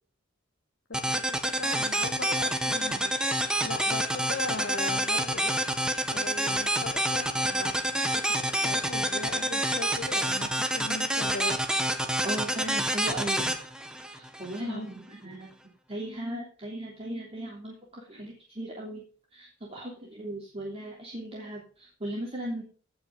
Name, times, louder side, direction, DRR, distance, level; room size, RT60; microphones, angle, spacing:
voice 1, 0.9-3.1 3.6-5.6 6.1-11.6 14.6-14.9, left 3 dB, 60° left, 3 dB, 1.6 m, -39 dB
sound 1, 0.9-14.6, right 1 dB, 5° right, 1.4 m, -28 dB
voice 2, 12.2-13.6 14.1-15.5 15.9-19.0 19.3-22.6, right 1 dB, 30° right, -3 dB, 3.2 m, -37 dB
17.0 x 6.0 x 5.3 m, 0.41 s
head